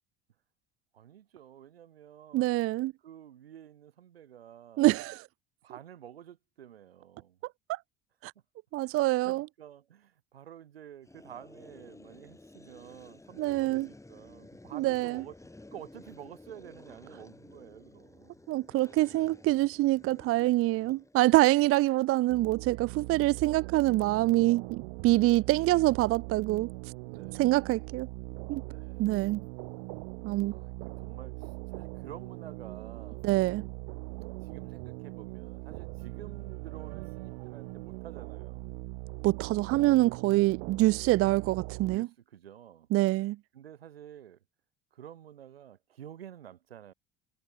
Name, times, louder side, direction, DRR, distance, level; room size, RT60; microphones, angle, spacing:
voice 1, 0.9-2.5 3.0-4.9 5.6-7.4 8.8-9.0 9.2-15.3 15.7-18.3 25.1-25.5 27.0-27.5 28.6-29.1 30.3-33.2 34.4-38.6 41.8-42.9 43.5-44.4 44.9-46.9, right 10 dB, 90° right, 2.4 m, -50 dB
voice 2, 2.3-2.9 4.8-5.3 7.7-7.8 8.2-8.3 8.7-9.4 13.4-13.9 14.7-15.2 18.5-26.7 27.4-28.1 28.5-28.6 29.0-29.4 30.2-30.5 33.2-33.6 39.2-42.1 42.9-43.4, right 18 dB, 50° right, 0.6 m, -25 dB
sound 1, 11.0-21.5, left 2 dB, 10° left, 5.2 m, -53 dB
sound 2, 22.3-42.0, right 37 dB, 70° right, 3.3 m, -41 dB
hypercardioid pair, 70°, 29 cm